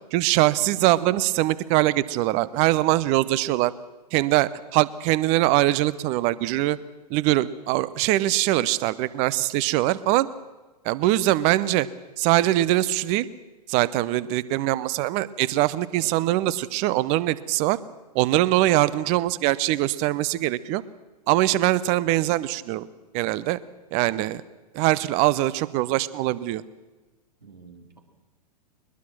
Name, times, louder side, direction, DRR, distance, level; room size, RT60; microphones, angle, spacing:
voice 1, 0.1-3.7 4.1-6.8 7.1-10.3 10.8-11.9 12.2-13.3 13.7-17.8 18.1-20.8 21.3-22.9 23.1-23.6 23.9-24.4 24.7-26.6, right 16 dB, 30° right, 19 dB, 0.8 m, -22 dB
voice 2, 27.4-28.0, right 5 dB, 80° right, 4 dB, 3.2 m, -47 dB
21.5 x 21.0 x 6.2 m, 1.2 s
figure-of-eight pair, 105°, 21 cm